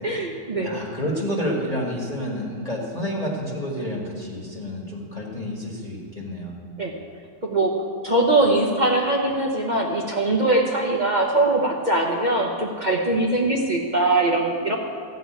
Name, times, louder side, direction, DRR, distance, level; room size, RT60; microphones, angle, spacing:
voice 1, 0.0-0.7 6.8-6.9 7.4-7.7 8.0-14.8, right 2 dB, 35° right, -1 dB, 0.9 m, -21 dB
voice 2, 0.6-6.5, equal, 25° left, -4 dB, 1.8 m, -29 dB
14.5 x 5.4 x 8.8 m, 2.2 s
omnidirectional pair, 1.6 m